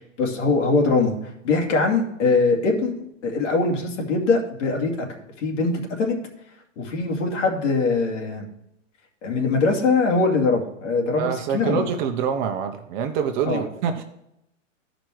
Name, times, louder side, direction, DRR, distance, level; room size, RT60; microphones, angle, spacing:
voice 1, 0.2-5.1 5.4-6.2 6.8-8.5 9.2-11.3 11.5-11.8 13.5-13.6, left 3 dB, 70° left, 1 dB, 2.4 m, -22 dB
voice 2, 11.2-14.0, right 7 dB, 35° right, 5 dB, 0.9 m, -26 dB
12.5 x 5.2 x 4.6 m, 0.80 s
hypercardioid pair, 135°, 38 cm